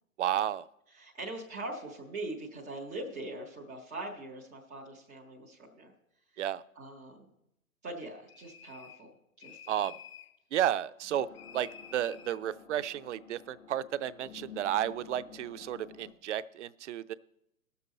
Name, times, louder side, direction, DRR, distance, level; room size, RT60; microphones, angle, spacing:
voice 1, 0.2-0.7 6.4-6.6 9.7-9.9 10.5-11.3 11.5-17.1, right 11 dB, 55° right, 15 dB, 0.6 m, -32 dB
voice 2, 0.9-5.9 6.7-7.3 7.8-9.8, right 2 dB, ahead, -13 dB, 0.3 m, -42 dB
sound 1, 8.3-9.1 9.4-10.4 11.3-12.4, left 7 dB, 45° left, 0.8 m, -51 dB
sound 2, 11.1-16.1, left 7 dB, 65° left, 1.4 m, -51 dB
18.5 x 7.0 x 4.1 m, 0.82 s
hypercardioid pair, 125°, 42 cm